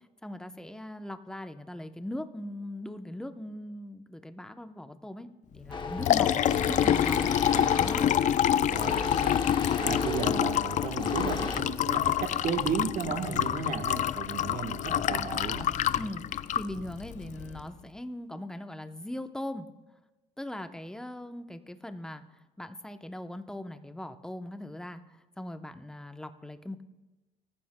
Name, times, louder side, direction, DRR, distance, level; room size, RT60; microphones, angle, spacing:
voice 1, 0.2-7.4 7.6-8.1 15.9-19.7 20.4-22.2 22.6-26.8, left 1 dB, 5° left, 8 dB, 0.7 m, -40 dB
Liquid, 5.7-17.6, left 10 dB, 45° left, 0.4 m, -27 dB
sound 1, 5.7-11.6, left 4 dB, 30° left, 1.2 m, -35 dB
voice 2, 6.2-6.7 7.5-7.7 8.5-15.7, right 6 dB, 55° right, 5 dB, 1.3 m, -35 dB
24.0 x 14.5 x 2.2 m, 1.1 s
cardioid pair, 110°, 17 cm